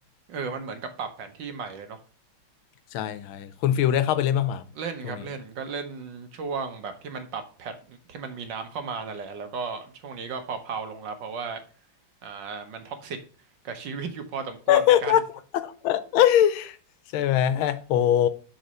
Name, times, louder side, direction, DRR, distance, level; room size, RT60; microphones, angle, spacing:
voice 1, 0.3-2.0 4.7-11.6 12.2-13.2 13.6-15.2, right 5 dB, 65° right, 1.6 m, -35 dB
voice 2, 2.9-4.6 5.0-5.2 14.7-15.2 15.5-16.8 17.1-18.3, left 11 dB, 90° left, 1.5 m, -22 dB
7.8 x 4.2 x 5.5 m
omnidirectional pair, 2.2 m